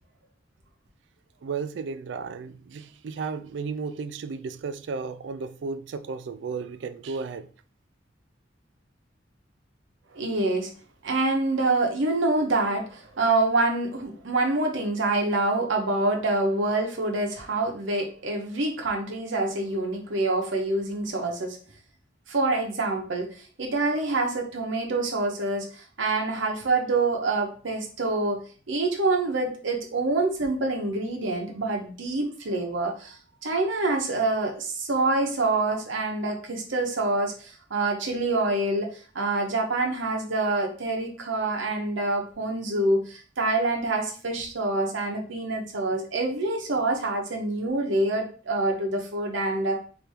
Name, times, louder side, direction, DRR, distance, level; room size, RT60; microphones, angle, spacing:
voice 1, 1.4-7.5, right 5 dB, 65° right, 0.3 m, -34 dB
voice 2, 10.1-10.7 11.0-21.6 22.3-23.3 23.6-28.4 28.7-38.9 39.1-49.8, right 2 dB, 80° right, 0.8 m, -26 dB
3.3 x 2.6 x 4.4 m
head